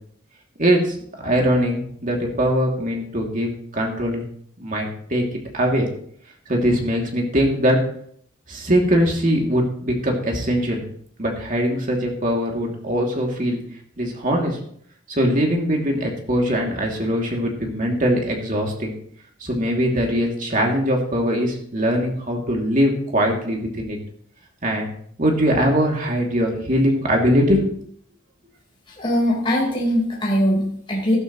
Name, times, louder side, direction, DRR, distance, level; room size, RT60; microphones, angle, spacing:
voice 1, 0.6-0.9 1.2-4.2 4.6-5.2 5.5-5.9 6.5-7.8 8.5-10.8 11.2-13.6 14.0-14.6 15.1-18.9 19.4-24.0 24.6-24.9 25.2-27.7, equal, 40° right, 0 dB, 2.6 m, -21 dB
voice 2, 29.0-31.2, equal, 25° left, -3 dB, 4.2 m, -21 dB
14.0 x 12.5 x 3.1 m, 0.63 s
head